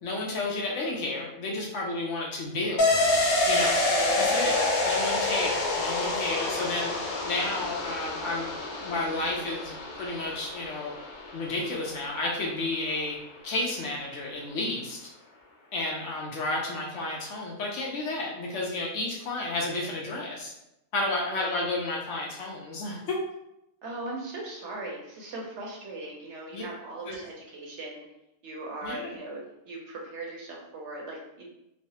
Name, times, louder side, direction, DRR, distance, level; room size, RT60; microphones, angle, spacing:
voice 1, 0.0-3.0 3.5-3.8 4.2-4.5 4.9-6.9 7.2-9.7 10.0-10.9 11.3-13.2 13.4-15.1 15.7-20.5 20.9-23.2 26.5-26.6 27.1-27.2 28.8-29.1, left 2 dB, 65° left, -2 dB, 0.9 m, -31 dB
sound 1, 2.8-12.2 12.5-12.6, left 2 dB, 90° left, 1.0 m, -28 dB
voice 2, 3.9-4.8 21.3-21.6 23.8-28.1 28.4-31.4, right 2 dB, 65° right, -2 dB, 0.8 m, -38 dB
3.1 x 2.0 x 2.8 m, 0.86 s
omnidirectional pair, 1.4 m